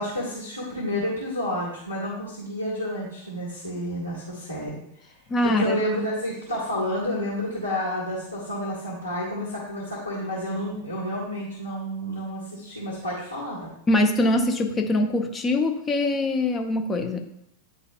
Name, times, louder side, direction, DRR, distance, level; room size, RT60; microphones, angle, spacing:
voice 1, 0.0-4.7 5.4-13.7, equal, 80° left, -9 dB, 1.9 m, -30 dB
voice 2, 5.3-5.8 13.9-17.2, left 1 dB, 20° left, 5 dB, 0.7 m, -23 dB
10.5 x 4.2 x 2.3 m, 0.75 s
figure-of-eight pair, 90°, 0 cm